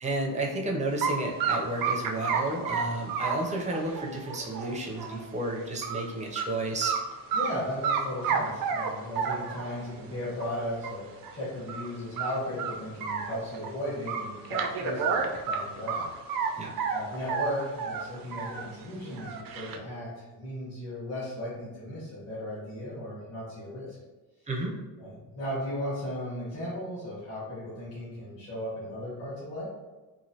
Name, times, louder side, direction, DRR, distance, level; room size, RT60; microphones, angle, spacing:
voice 1, 0.0-6.9 16.6-16.8 24.5-24.7, right 2 dB, 20° right, 0 dB, 0.5 m, -32 dB
sound 1, 1.0-1.1 1.4-5.2 5.6-6.0 6.3-6.5 6.8-7.5 7.8-9.8 10.4-10.5 10.8-10.9 11.2-11.3 11.7-11.9 12.2-13.7 14.1-16.5 16.8-18.6 19.0-19.8, right 6 dB, 75° right, 0.5 m, -30 dB
voice 2, 2.7-3.0 7.3-16.0 16.3-24.0 25.0-29.7, left 1 dB, 45° left, -9 dB, 1.3 m, -36 dB
3.1 x 2.5 x 2.7 m, 1.2 s
cardioid pair, 140°, 35 cm